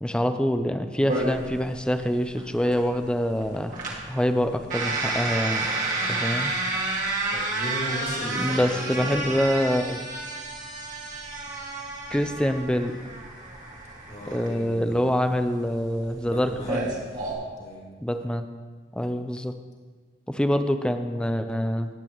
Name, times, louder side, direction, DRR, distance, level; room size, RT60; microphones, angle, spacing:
voice 1, 0.0-3.8 4.1-5.7 6.1-6.5 8.3-10.0 12.1-12.9 14.3-16.9 18.0-18.5 18.9-19.5 20.3-21.9, equal, 5° left, 8 dB, 0.5 m, -25 dB
sound 1, 1.1-17.3, right 2 dB, 45° right, 1.9 m, -31 dB
voice 2, 7.3-9.2 14.1-15.1 16.2-16.8 17.6-17.8, equal, 40° left, -3 dB, 2.3 m, -36 dB
18.0 x 8.3 x 3.1 m, 1.5 s
head